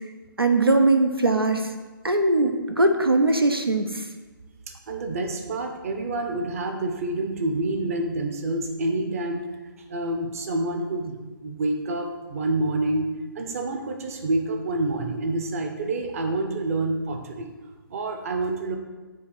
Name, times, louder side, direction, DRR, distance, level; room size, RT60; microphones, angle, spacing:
voice 1, 0.4-1.7 2.0-4.0, right 2 dB, 85° right, 6 dB, 0.8 m, -20 dB
voice 2, 4.7-9.5 9.9-13.1 13.3-17.5 17.9-18.8, right 2 dB, 40° right, 5 dB, 0.9 m, -28 dB
7.8 x 3.3 x 6.3 m, 1.3 s
figure-of-eight pair, 140°, 12 cm